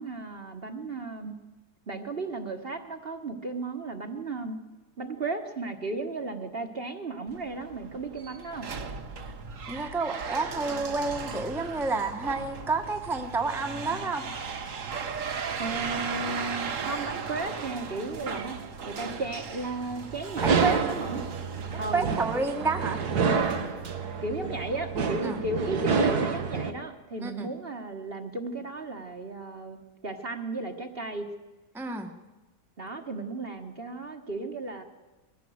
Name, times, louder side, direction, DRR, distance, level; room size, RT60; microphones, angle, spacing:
voice 1, 0.0-1.3 1.9-4.6 5.0-8.7 15.6-18.6 18.9-21.2 21.8-22.1 24.2-31.3 32.8-34.8, right 3 dB, 40° right, 5 dB, 1.6 m, -35 dB
sound 1, 7.3-24.8, right 5 dB, 55° right, 1.6 m, -37 dB
voice 2, 9.7-14.2 20.4-20.8 21.7-23.0 25.2-25.4 27.2-27.5 31.7-32.1, right 3 dB, ahead, 4 dB, 1.2 m, -30 dB
sound 2, 20.4-26.7, right 5 dB, 75° right, 2.0 m, -28 dB
22.0 x 15.0 x 7.9 m, 1.2 s
omnidirectional pair, 1.7 m